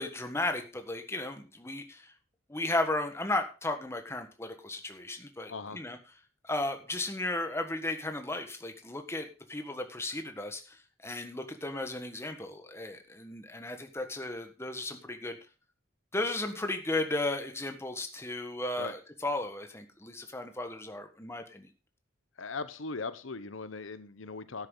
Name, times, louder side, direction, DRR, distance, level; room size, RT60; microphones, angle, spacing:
voice 1, 0.0-2.1 2.5-6.0 6.4-15.4 16.1-21.7, left 2 dB, 15° left, 6 dB, 1.5 m, -35 dB
voice 2, 22.4-24.7, left 4 dB, 80° left, 13 dB, 1.0 m, -39 dB
12.5 x 10.5 x 4.0 m, 0.32 s
head